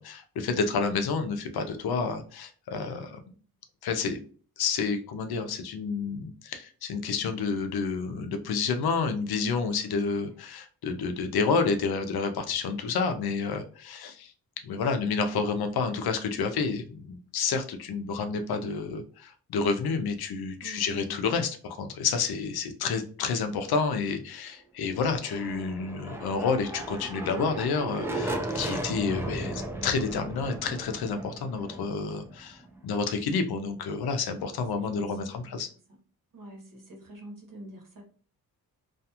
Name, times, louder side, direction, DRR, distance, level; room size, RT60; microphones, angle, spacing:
voice 1, 0.0-3.2 3.8-4.2 4.6-14.3 14.6-35.7, left 5 dB, 85° left, 7 dB, 0.5 m, -29 dB
voice 2, 9.8-10.4 20.6-21.2 34.7-35.6 36.3-38.0, right 1 dB, 60° right, 1 dB, 1.1 m, -47 dB
sound 1, 25.1-32.9, right 1 dB, 5° right, 0.4 m, -36 dB
2.4 x 2.3 x 2.8 m, 0.40 s
cardioid pair, 75°, 36 cm